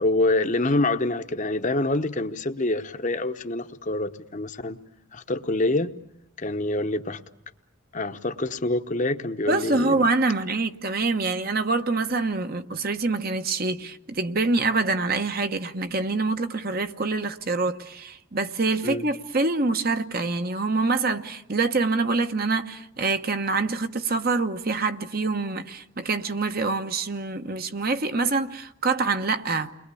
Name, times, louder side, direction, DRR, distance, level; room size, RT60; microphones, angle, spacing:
voice 1, 0.0-4.8 5.1-5.9 6.4-7.2 7.9-10.0 18.8-19.0, left 2 dB, 35° left, 1.0 m, -26 dB
voice 2, 9.5-29.7, right 3 dB, 45° right, 1.1 m, -25 dB
29.5 x 22.0 x 8.4 m
head